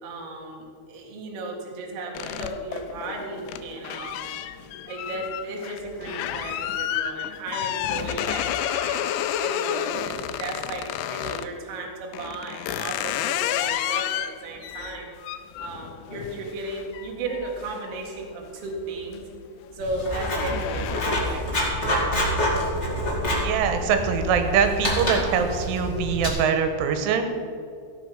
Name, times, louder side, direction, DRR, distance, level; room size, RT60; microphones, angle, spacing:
voice 1, 0.0-4.4 4.8-9.1 9.4-15.1 15.6-19.2 19.7-21.9, right 2 dB, 55° right, 0 dB, 1.6 m, -35 dB
sound 1, 2.1-11.5 12.1-18.6 19.0-19.4 19.7-21.5, left 11 dB, 80° left, 2.7 m, -31 dB
Writing, 19.8-26.3, equal, 30° left, 1.3 m, -27 dB
voice 2, 23.4-27.2, right 6 dB, 85° right, 7 dB, 3.4 m, -23 dB
15.5 x 8.0 x 5.8 m, 2.4 s
omnidirectional pair, 5.5 m